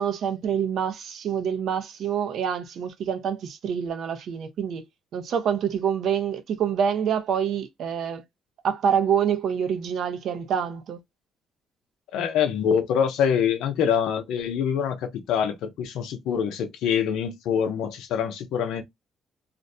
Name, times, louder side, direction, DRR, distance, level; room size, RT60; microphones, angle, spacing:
voice 1, 0.0-4.9 5.1-8.2 8.6-11.0, right 8 dB, 70° right, 0.6 m, -26 dB
voice 2, 12.1-18.8, left 8 dB, 85° left, 0.6 m, -25 dB
2.5 x 2.1 x 2.5 m
cardioid pair, 90°, 0 cm